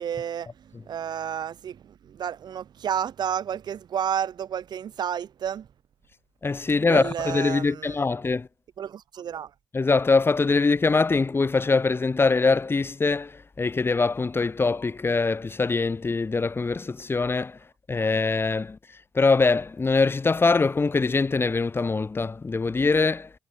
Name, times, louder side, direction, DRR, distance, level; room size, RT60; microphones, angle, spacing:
voice 1, 0.0-5.7 6.9-7.9 8.8-9.5, right 9 dB, 65° right, 4.4 m, -31 dB
voice 2, 6.4-8.5 9.7-17.6 17.9-18.8 19.1-23.3, left 4 dB, 30° left, 1.8 m, -23 dB
cardioid pair, 75°, 8 cm